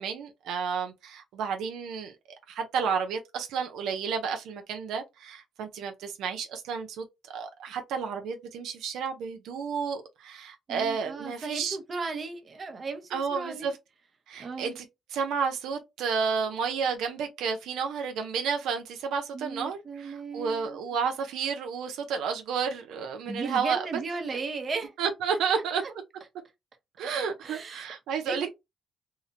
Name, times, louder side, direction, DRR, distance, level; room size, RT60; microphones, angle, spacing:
voice 1, 0.0-2.1 2.5-7.1 7.3-11.8 13.1-13.8 14.3-14.8 15.1-24.0 25.0-25.8 27.0-28.5, right 6 dB, 85° right, 0.5 m, -31 dB
voice 2, 10.7-13.7 14.4-14.8 19.3-20.8 23.3-24.9 25.8-25.9 27.4-27.9 28.3-28.5, right 4 dB, 40° right, 0.7 m, -36 dB
2.8 x 2.1 x 2.5 m
cardioid pair, 90°, 0 cm